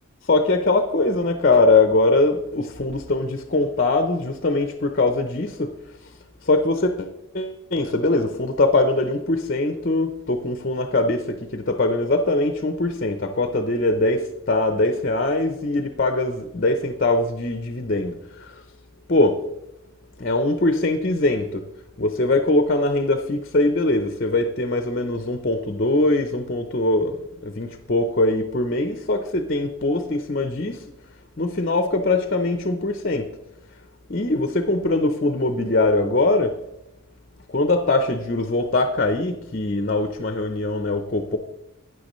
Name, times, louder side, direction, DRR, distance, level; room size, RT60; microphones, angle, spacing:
voice 1, 0.3-5.7 6.4-18.6 19.1-19.4 20.2-21.7 22.0-30.8 31.4-33.3 34.1-36.6 37.5-41.4, left 2 dB, 40° left, 7 dB, 0.7 m, -22 dB
12.0 x 9.3 x 3.1 m, 0.91 s
head